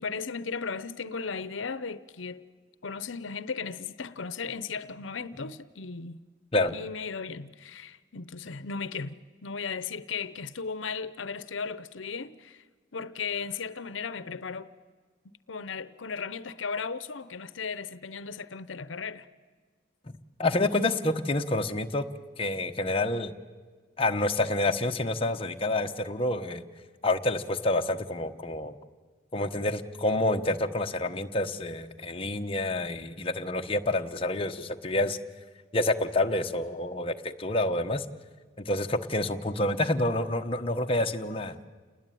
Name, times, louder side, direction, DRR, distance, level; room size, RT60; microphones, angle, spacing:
voice 1, 0.0-2.4 2.8-6.2 6.7-12.6 12.9-14.7 15.5-19.3, left 5 dB, 85° left, 0.8 m, -36 dB
voice 2, 20.4-22.1 22.4-23.3 24.0-26.6 27.0-28.7 29.3-35.2 35.7-38.0 38.6-41.6, left 2 dB, 30° left, 1.1 m, -28 dB
29.0 x 20.0 x 9.3 m
head